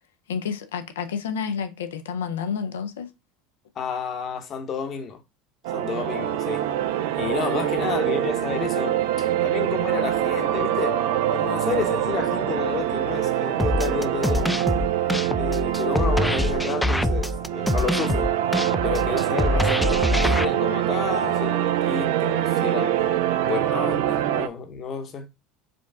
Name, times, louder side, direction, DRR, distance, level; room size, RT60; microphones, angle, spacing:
voice 1, 0.3-3.1, left 6 dB, 85° left, 0.6 m, -30 dB
voice 2, 3.7-5.2 5.7-6.7 7.2-11.0 11.3-14.6 15.4-18.3 18.8-25.3, left 6 dB, 45° left, 1.0 m, -31 dB
sound 1, 5.6-24.5, right 11 dB, 70° right, 0.3 m, -24 dB
sound 2, 13.6-20.4, left 1 dB, 5° left, 0.3 m, -24 dB
5.0 x 2.3 x 3.6 m
hypercardioid pair, 80°, 0 cm